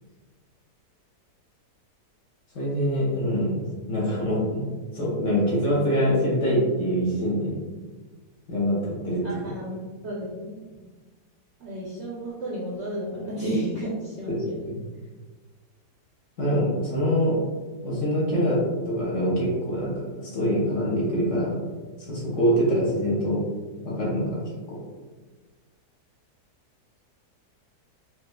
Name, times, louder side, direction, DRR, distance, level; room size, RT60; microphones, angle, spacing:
voice 1, 2.5-4.6 4.9-7.6 8.5-9.4 14.3-14.8 16.4-17.4 17.8-21.6 22.0-23.4 23.8-24.4 24.7-24.8, equal, 55° left, -6 dB, 1.1 m, -24 dB
voice 2, 9.2-9.7 10.0-10.7 11.6-14.5, right 1 dB, 65° right, -6 dB, 0.7 m, -32 dB
4.1 x 2.3 x 2.3 m, 1.3 s
omnidirectional pair, 1.8 m